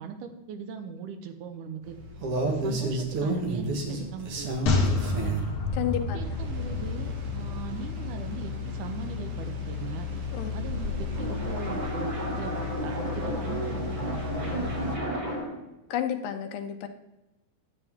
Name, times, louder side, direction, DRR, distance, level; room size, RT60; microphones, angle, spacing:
voice 1, 0.0-2.0 2.4-5.5 6.0-10.1 10.5-15.2, right 6 dB, 75° right, 6 dB, 2.2 m, -40 dB
sound 1, 1.8-15.0, left 1 dB, 55° right, 1.8 m, -32 dB
sound 2, 4.7-8.1 8.4-8.5, left 3 dB, 50° left, 1.8 m, -29 dB
voice 2, 5.7-6.2 10.3-10.6 15.9-16.9, left 10 dB, 80° left, 6 dB, 2.5 m, -31 dB
sound 3, 10.9-15.6, right 1 dB, 15° right, 2.1 m, -33 dB
11.0 x 8.1 x 3.6 m, 0.98 s
omnidirectional pair, 4.0 m